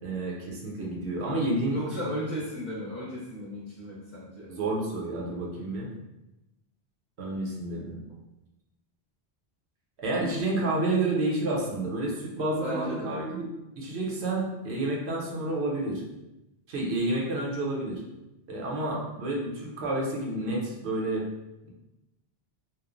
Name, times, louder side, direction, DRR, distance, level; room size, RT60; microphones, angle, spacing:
voice 1, 0.0-2.1 4.5-5.9 7.2-8.0 10.0-13.5 13.8-16.0 16.7-18.0 18.5-21.3, right 2 dB, 80° right, -2 dB, 0.9 m, -30 dB
voice 2, 1.7-4.5 12.6-13.2, equal, 50° left, -5 dB, 0.7 m, -35 dB
3.0 x 2.1 x 2.4 m, 0.95 s
omnidirectional pair, 1.1 m